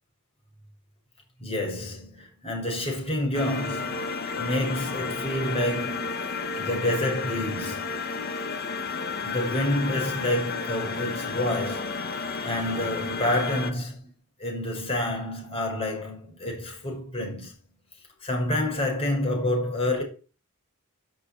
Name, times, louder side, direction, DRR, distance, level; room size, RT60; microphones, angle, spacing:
voice 1, 1.4-8.1 9.2-11.9 12.4-14.1 14.4-17.6 18.2-20.0, left 1 dB, 30° left, 5.9 m, -28 dB
sound 1, 3.3-13.7, left 4 dB, 50° left, 1.7 m, -32 dB
11.5 x 6.8 x 8.7 m
head